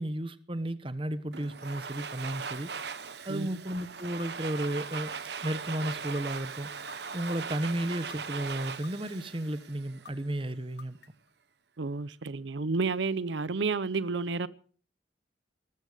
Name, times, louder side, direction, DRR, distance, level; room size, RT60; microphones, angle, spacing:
voice 1, 0.0-2.7 3.2-5.2 5.4-6.7 7.1-11.0, right 1 dB, 30° right, 1.1 m, -33 dB
Domestic sounds home sounds, 1.3-10.2, right 5 dB, 65° right, 1.2 m, -39 dB
sound 1, 4.2-4.3 4.9-5.4 6.1-6.2 6.9-7.4 8.1-8.2 8.8-9.3 10.0-10.1 10.8-11.3, left 6 dB, 65° left, 1.1 m, -49 dB
voice 2, 11.8-14.5, right 4 dB, 80° right, 0.7 m, -30 dB
20.5 x 13.5 x 5.1 m
head